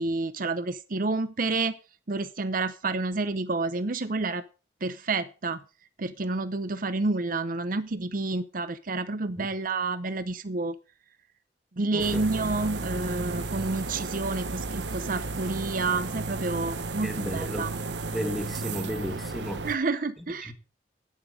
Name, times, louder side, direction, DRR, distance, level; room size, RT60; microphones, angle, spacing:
voice 1, 0.0-1.8 2.1-4.4 4.8-5.6 6.0-10.7 11.8-17.7 19.6-20.5, right 3 dB, 50° right, 0.8 m, -29 dB
voice 2, 11.9-12.2 17.0-17.8 18.1-19.7 20.4-20.5, equal, ahead, 1.8 m, -34 dB
sound 1, 12.0-19.8, right 3 dB, 75° right, 1.0 m, -33 dB
11.0 x 9.1 x 5.0 m
head